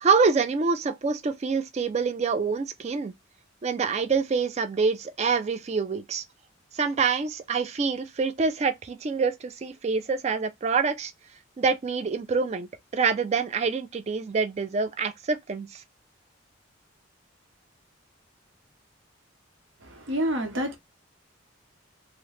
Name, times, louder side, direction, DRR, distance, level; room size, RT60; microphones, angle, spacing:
voice 1, 0.0-3.1 3.6-6.2 6.7-11.1 11.6-12.7 12.9-15.8, right 5 dB, 35° right, 0.3 m, -26 dB
voice 2, 20.1-20.8, equal, 70° right, 0.9 m, -27 dB
2.8 x 2.0 x 3.1 m
head